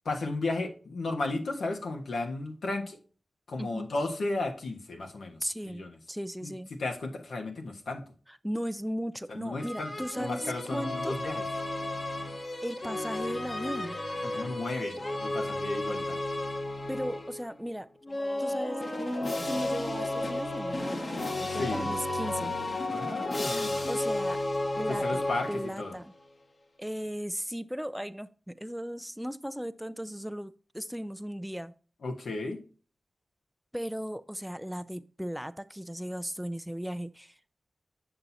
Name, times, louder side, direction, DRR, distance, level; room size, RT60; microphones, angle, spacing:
voice 1, 0.0-3.0 3.5-6.0 6.4-6.5 6.8-8.0 9.3-9.9 10.2-11.4 14.2-16.2 21.6-21.9 22.9-23.9 24.9-26.0 32.0-32.6, left 2 dB, 90° left, 3 dB, 1.3 m, -34 dB
voice 2, 3.6-3.9 5.4-6.7 8.3-11.2 12.6-14.0 16.9-17.9 18.4-22.6 23.9-24.4 24.8-26.1 26.8-31.7 33.7-37.5, equal, 5° right, 14 dB, 0.4 m, -36 dB
sound 1, 9.6-17.5 18.0-26.0, left 2 dB, 45° left, 1.1 m, -33 dB
7.7 x 6.0 x 2.7 m, 0.38 s
cardioid pair, 60°, 0 cm